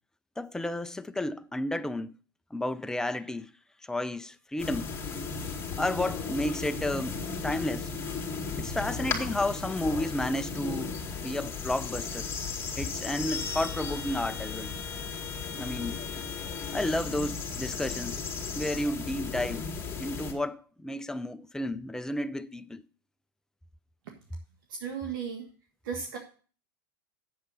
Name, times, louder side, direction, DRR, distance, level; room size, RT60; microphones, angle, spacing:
voice 1, 0.4-2.1 2.5-3.5 3.9-4.9 5.8-7.9 8.6-12.3 12.8-14.8 15.5-16.0 16.7-18.2 18.5-19.7 20.0-22.8, left 1 dB, 5° left, 0.5 m, -32 dB
sound 1, 4.6-20.3, left 5 dB, 20° left, 2.3 m, -35 dB
voice 2, 24.8-25.5 25.8-26.2, right 7 dB, 70° right, 1.7 m, -35 dB
7.9 x 7.6 x 5.4 m
hypercardioid pair, 105°, 12 cm